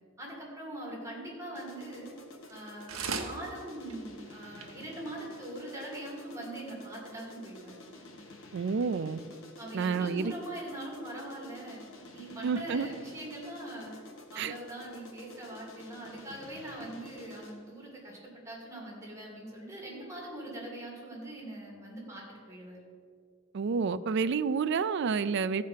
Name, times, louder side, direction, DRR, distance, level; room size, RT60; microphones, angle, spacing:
voice 1, 0.2-2.1 2.5-7.8 9.6-11.8 12.1-14.0 14.3-22.8, right 1 dB, 15° right, -4 dB, 2.9 m, -42 dB
sound 1, 1.6-17.7, left 1 dB, 70° left, 1.3 m, -51 dB
sound 2, 2.5-2.6 2.9-3.3 3.9-4.0 4.3-4.4 4.6-4.7 5.3-5.4, right 5 dB, 85° right, 0.9 m, -35 dB
voice 2, 8.5-9.2 9.7-10.3 12.4-12.9 14.4-14.5 23.5-25.6, right 5 dB, 60° right, 14 dB, 0.4 m, -29 dB
15.0 x 5.1 x 5.6 m, 2.1 s
head